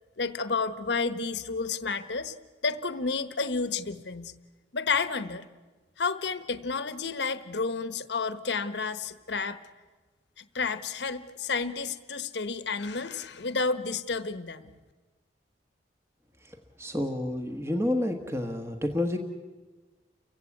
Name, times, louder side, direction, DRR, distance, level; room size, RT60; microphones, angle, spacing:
voice 1, 0.2-2.3 2.6-4.3 4.7-5.4 6.0-9.6 10.4-14.7, left 4 dB, 70° left, 11 dB, 1.1 m, -31 dB
voice 2, 16.4-19.2, left 1 dB, 15° right, 5 dB, 1.2 m, -30 dB
30.0 x 16.0 x 8.4 m, 1.3 s
head